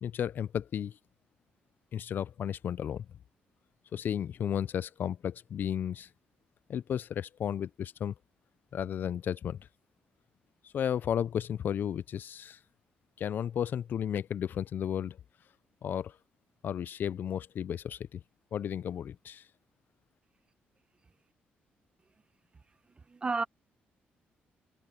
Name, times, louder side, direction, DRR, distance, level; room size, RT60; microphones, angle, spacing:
voice 1, 0.0-0.9 1.9-3.1 3.9-6.1 6.7-8.1 8.7-9.6 10.6-12.6 13.2-15.2 15.8-16.2 16.6-18.2 18.5-19.5, left 9 dB, 55° left, 0.3 m, -33 dB
voice 2, 22.9-23.4, right 4 dB, 25° right, 0.9 m, -32 dB
cardioid pair, 105°, 4 cm